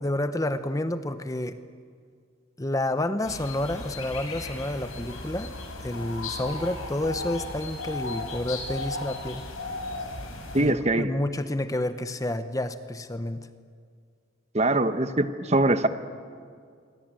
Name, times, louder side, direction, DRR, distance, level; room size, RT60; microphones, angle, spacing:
voice 1, 0.0-1.6 2.6-5.5 5.8-9.4 10.6-13.5, left 1 dB, 15° left, 11 dB, 0.8 m, -29 dB
sound 1, 3.2-10.6, left 2 dB, 90° left, 5.9 m, -36 dB
voice 2, 10.5-11.1 14.5-15.9, right 2 dB, 30° right, 10 dB, 1.1 m, -22 dB
27.5 x 23.5 x 9.0 m, 2.1 s
head